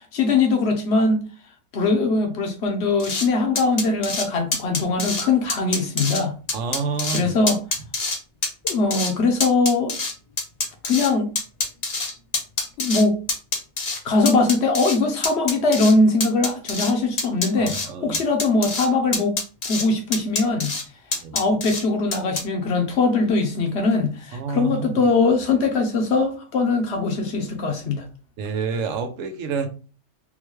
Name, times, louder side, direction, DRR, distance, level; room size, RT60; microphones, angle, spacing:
voice 1, 0.1-1.2 1.7-6.3 7.1-7.6 8.6-9.9 10.8-11.3 12.8-13.2 14.0-19.4 19.6-20.7 21.3-28.0, left 3 dB, 60° left, 0.9 m, -21 dB
sound 1, 3.0-3.3 3.6-4.3 4.5-5.2 5.5-6.2 6.5-7.2 7.5-8.2 8.4-9.1 9.4-11.1 11.4-13.0 13.3-14.0 14.3-15.0 15.2-15.9 16.2-16.9 17.2-17.9 18.1-18.9 19.1-19.8 20.1-20.8 21.1-21.8 22.1-22.4, left 3 dB, 40° left, 0.6 m, -25 dB
voice 2, 6.5-7.3 17.6-18.2 21.1-21.4 24.3-25.0 28.4-29.7, right 5 dB, 80° right, 1.0 m, -28 dB
3.8 x 2.2 x 3.0 m
omnidirectional pair, 1.3 m